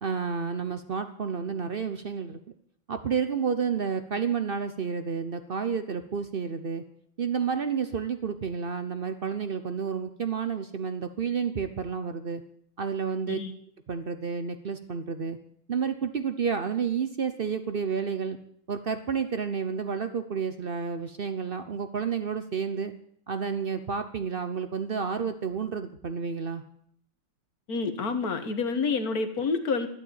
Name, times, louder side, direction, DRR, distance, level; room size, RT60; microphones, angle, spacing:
voice 1, 0.0-2.4 2.9-6.8 7.2-12.4 12.8-13.4 13.9-15.4 15.7-18.4 18.7-22.9 23.3-26.6, right 6 dB, 80° right, 10 dB, 0.5 m, -30 dB
voice 2, 27.7-29.9, left 4 dB, 45° left, 8 dB, 1.9 m, -28 dB
13.5 x 12.0 x 8.8 m, 0.65 s
omnidirectional pair, 2.3 m